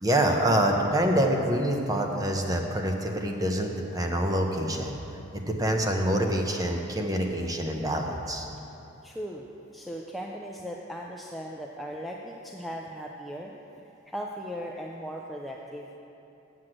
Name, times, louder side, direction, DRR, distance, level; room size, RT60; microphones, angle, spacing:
voice 1, 0.0-5.0 5.3-8.5, right 1 dB, 20° right, 2 dB, 0.9 m, -26 dB
voice 2, 9.0-9.5 9.7-13.5 14.1-16.0, equal, ahead, -2 dB, 0.5 m, -38 dB
8.0 x 7.4 x 7.6 m, 2.9 s
head